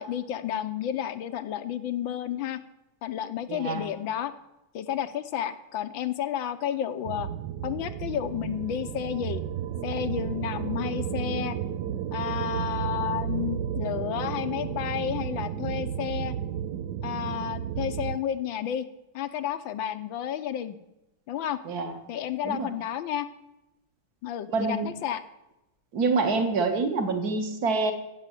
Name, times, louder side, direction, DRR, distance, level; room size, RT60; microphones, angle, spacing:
voice 1, 0.0-2.6 3.0-4.3 4.7-7.3 7.6-9.4 9.8-11.6 12.1-16.3 17.0-18.9 19.1-20.8 21.3-21.6 22.1-23.3 24.2-25.2, left 10 dB, 70° left, 12 dB, 1.5 m, -31 dB
voice 2, 3.5-3.8 21.7-22.0 22.4-22.7 24.5-24.9 25.9-27.9, right 3 dB, 45° right, 7 dB, 2.1 m, -26 dB
sound 1, 7.0-18.2, right 9 dB, 70° right, 1.2 m, -32 dB
15.0 x 7.9 x 9.8 m, 0.95 s
omnidirectional pair, 2.4 m